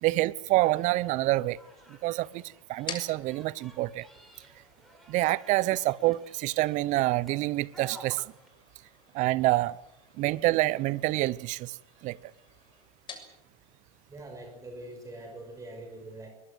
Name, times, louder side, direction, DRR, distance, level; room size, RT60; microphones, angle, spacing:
voice 1, 0.0-1.6 1.9-4.1 5.1-8.2 9.1-9.8 10.2-11.8 12.0-12.2, right 18 dB, 40° right, 1.0 m, -27 dB
sound 1, 0.6-8.5, equal, ahead, 8.0 m, -54 dB
sound 2, 1.3-15.7, left 5 dB, 25° left, 6.6 m, -50 dB
voice 2, 14.1-16.3, right 1 dB, 15° right, 5.7 m, -43 dB
23.5 x 21.5 x 8.1 m
hypercardioid pair, 105°, 19 cm